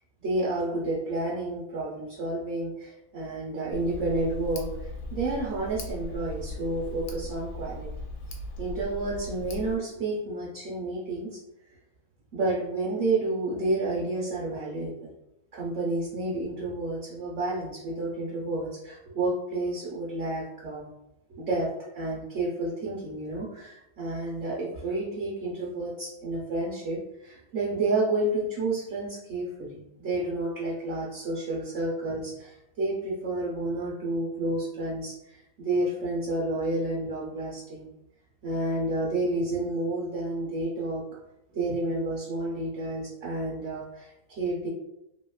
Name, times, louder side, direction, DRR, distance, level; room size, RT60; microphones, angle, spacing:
voice 1, 0.2-7.9 8.6-11.4 12.3-15.1 15.5-20.9 21.4-37.9 38.4-41.1 41.5-44.7, right 2 dB, 60° right, -5 dB, 0.8 m, -30 dB
Tick, 3.7-9.8, equal, 70° left, 0.8 m, -38 dB
2.8 x 2.8 x 2.3 m, 0.86 s
omnidirectional pair, 1.8 m